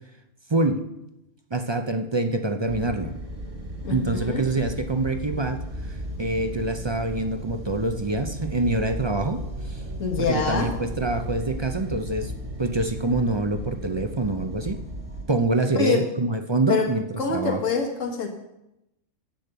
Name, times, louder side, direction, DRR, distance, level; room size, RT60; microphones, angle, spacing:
voice 1, 0.5-0.9 1.5-3.1 3.9-5.6 5.9-9.8 10.2-12.3 12.6-14.8 15.3-17.0 17.3-17.6, right 2 dB, 35° right, 7 dB, 0.4 m, -25 dB
sound 1, 2.7-15.2, right 1 dB, 55° right, 3.1 m, -35 dB
voice 2, 3.8-4.4 10.0-10.7 15.8-16.1 16.7-16.9 17.2-18.3, left 4 dB, 70° left, 2 dB, 1.9 m, -25 dB
10.0 x 8.3 x 6.8 m, 0.89 s
omnidirectional pair, 1.3 m